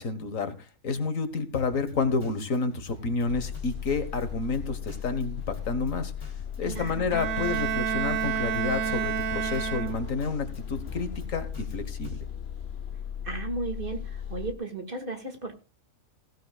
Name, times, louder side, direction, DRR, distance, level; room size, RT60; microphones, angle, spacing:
voice 1, 0.0-6.1 6.6-12.3, left 4 dB, 70° left, 10 dB, 1.9 m, -30 dB
Drum kit, 1.5-12.2, right 1 dB, 20° left, 2.8 m, -48 dB
sound 1, 3.3-14.5, left 8 dB, 55° left, 1.1 m, -37 dB
voice 2, 6.6-7.1 13.2-15.6, right 3 dB, 40° right, 5 dB, 2.3 m, -35 dB
Bowed string instrument, 7.1-10.3, right 9 dB, 75° right, 1.3 m, -30 dB
16.0 x 15.0 x 2.4 m, 0.32 s
omnidirectional pair, 1.4 m